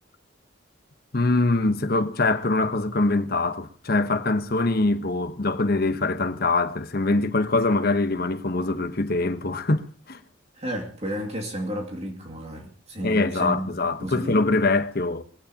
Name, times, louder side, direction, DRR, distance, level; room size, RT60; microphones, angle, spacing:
voice 1, 1.1-10.2 13.0-15.2, left 2 dB, 55° left, 1.2 m, -23 dB
voice 2, 10.5-13.7 14.0-14.4, equal, 35° right, 2.4 m, -32 dB
22.0 x 16.0 x 2.9 m
head